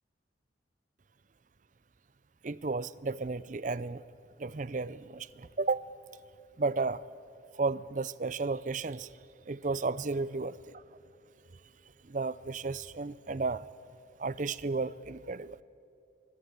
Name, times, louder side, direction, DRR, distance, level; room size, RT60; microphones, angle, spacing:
voice 1, 2.4-4.0 4.4-5.9 6.6-7.0 7.6-9.1 9.5-10.6 12.1-13.6 14.2-15.6, right 3 dB, 40° right, 19 dB, 0.5 m, -33 dB
24.0 x 21.0 x 8.3 m, 2.6 s
head